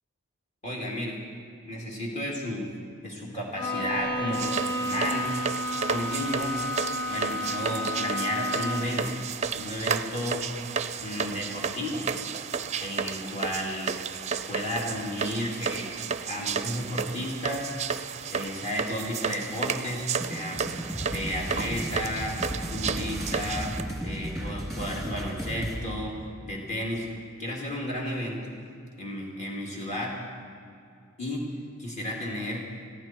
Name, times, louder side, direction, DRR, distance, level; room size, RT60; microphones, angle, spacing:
voice 1, 0.6-1.2 1.6-2.7 3.0-5.3 5.9-6.6 7.1-9.1 9.5-10.5 11.0-12.1 12.8-14.0 14.5-15.9 16.3-17.7 18.3-22.4 22.7-23.7 24.0-26.2 26.4-27.1 27.4-28.5 29.0-30.2 31.2-31.4 31.8-32.6, left 1 dB, 35° left, -3 dB, 3.0 m, -33 dB
Bowed string instrument, 3.5-9.1, left 1 dB, 85° left, 4.6 m, -31 dB
sound 1, 4.3-23.8, right 6 dB, 30° right, 0.5 m, -33 dB
sound 2, 20.2-25.8, equal, ahead, 3.0 m, -34 dB
20.5 x 15.0 x 4.6 m, 2.4 s
head